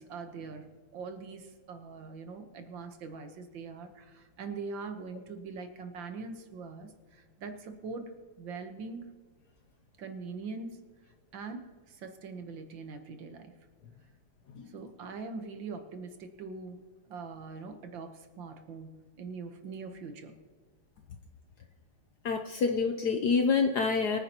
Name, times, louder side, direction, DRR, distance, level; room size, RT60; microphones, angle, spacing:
voice 1, 0.0-8.1 8.4-9.1 10.0-10.8 11.3-13.6 14.7-16.8 17.1-20.4, right 4 dB, 65° right, 8 dB, 1.7 m, -42 dB
voice 2, 22.2-24.2, left 5 dB, 65° left, 5 dB, 1.0 m, -27 dB
24.0 x 9.8 x 2.9 m, 1.5 s
omnidirectional pair, 2.4 m